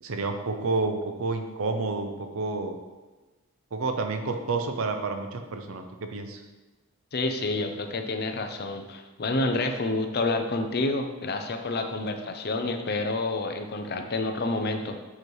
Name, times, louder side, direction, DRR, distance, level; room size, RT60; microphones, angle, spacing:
voice 1, 0.0-2.8 3.7-6.4, right 3 dB, 70° right, 6 dB, 0.6 m, -30 dB
voice 2, 7.1-15.0, left 2 dB, 45° left, 6 dB, 0.5 m, -29 dB
7.6 x 3.1 x 4.6 m, 1.2 s
head